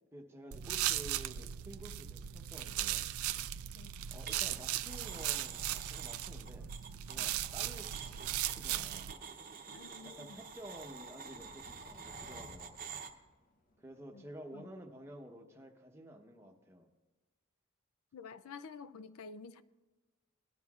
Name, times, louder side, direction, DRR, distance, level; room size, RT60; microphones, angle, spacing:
voice 1, 0.1-3.1 4.1-6.7 7.0-9.2 10.0-12.8 13.8-16.9, right 1 dB, 10° right, 2 dB, 0.9 m, -51 dB
sound 1, 0.5-9.1, right 12 dB, 80° right, 0.4 m, -37 dB
sound 2, 4.3-4.6 4.9-13.1, right 6 dB, 40° right, 0.8 m, -48 dB
voice 2, 9.7-10.4 14.1-14.2 14.5-14.7 18.1-19.6, left 5 dB, 80° left, 14 dB, 0.4 m, -49 dB
sound 3, 11.2-13.9, left 2 dB, 40° left, 0.7 m, -57 dB
18.5 x 11.0 x 2.4 m, 1.2 s
head